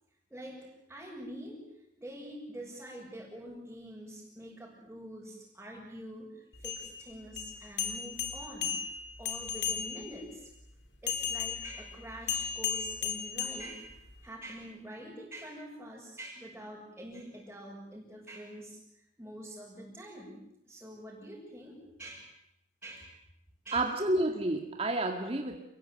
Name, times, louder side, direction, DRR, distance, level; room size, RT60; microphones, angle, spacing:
voice 1, 0.3-1.6 2.0-10.5 11.0-13.9 14.2-20.4 20.7-22.3 22.8-23.2 23.6-23.9, right 1 dB, 10° right, -6 dB, 7.3 m, -46 dB
sound 1, 6.5-10.2 11.1-14.2, left 8 dB, 60° left, 3.8 m, -36 dB
voice 2, 23.7-25.6, right 1 dB, 30° right, 4 dB, 2.1 m, -30 dB
29.0 x 22.0 x 9.2 m, 0.84 s
head